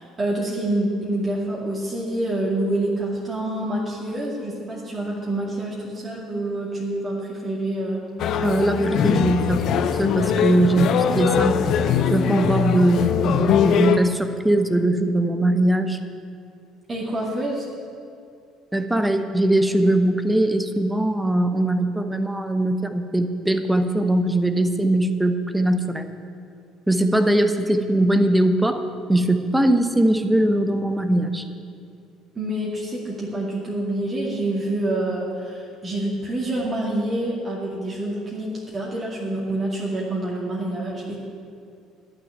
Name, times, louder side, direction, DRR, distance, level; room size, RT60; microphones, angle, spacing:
voice 1, 0.0-8.0 16.9-17.7 32.3-41.1, right 1 dB, 25° right, -5 dB, 2.3 m, -27 dB
sound 1, 8.2-14.0, left 8 dB, 50° left, 0.6 m, -21 dB
voice 2, 8.4-11.7 12.1-16.0 18.7-26.1 26.9-28.8 29.1-31.4, right 1 dB, 10° right, 8 dB, 1.0 m, -21 dB
12.5 x 6.1 x 9.2 m, 2.4 s
figure-of-eight pair, 55°, 0 cm